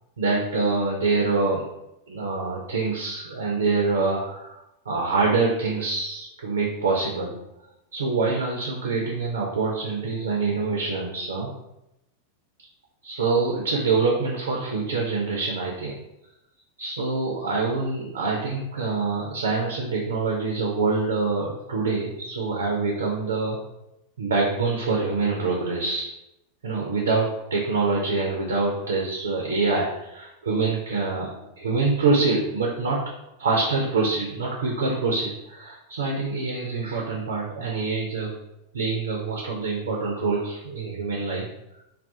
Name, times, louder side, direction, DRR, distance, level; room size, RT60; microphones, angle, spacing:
voice 1, 0.2-1.7 2.1-4.6 4.9-7.3 7.9-11.5 13.0-16.0 16.8-23.6 24.2-26.1 26.6-33.0 33.4-38.3 38.7-41.5, right 3 dB, 65° right, -1 dB, 0.4 m, -25 dB
2.3 x 2.2 x 2.6 m, 0.87 s
figure-of-eight pair, 90°, 0 cm